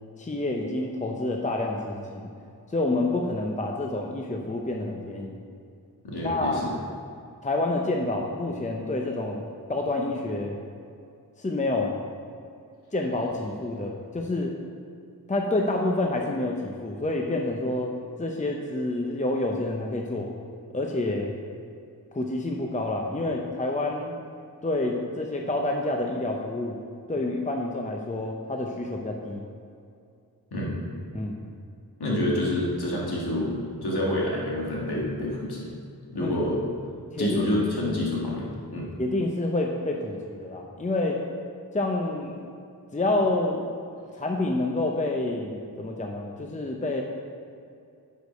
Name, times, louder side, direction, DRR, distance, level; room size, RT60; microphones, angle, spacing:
voice 1, 0.2-2.3 2.7-5.4 6.2-6.7 7.4-9.4 9.7-10.6 11.4-12.0 12.9-14.6 15.3-20.3 20.7-21.3 22.1-24.2 24.6-26.8 27.1-29.4 31.1-31.4 36.2-36.4 37.1-38.0 39.0-41.2 41.7-42.3 42.9-43.6 44.1-47.0, left 2 dB, 20° left, 1 dB, 0.7 m, -28 dB
voice 2, 6.0-6.7 30.5-30.8 32.0-33.5 33.8-35.7 36.1-36.6 37.2-38.9, left 1 dB, 80° left, -4 dB, 1.7 m, -28 dB
6.5 x 5.1 x 5.2 m, 2.4 s
cardioid pair, 45°, 38 cm